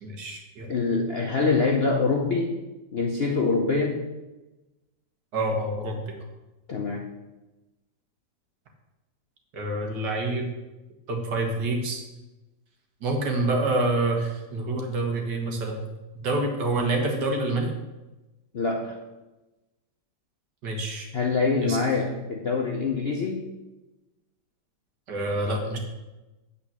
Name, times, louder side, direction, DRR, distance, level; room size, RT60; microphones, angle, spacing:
voice 1, 0.0-0.7 5.3-6.1 9.5-10.5 11.1-12.0 13.0-15.8 16.1-17.7 20.6-21.1 21.6-21.8 25.1-25.8, right 2 dB, 70° right, 2 dB, 2.0 m, -27 dB
voice 2, 0.7-2.6 2.9-4.0 6.7-7.1 18.5-19.0 21.1-23.5, left 4 dB, 55° left, 1 dB, 0.7 m, -25 dB
8.6 x 4.3 x 7.2 m, 1.1 s
omnidirectional pair, 2.0 m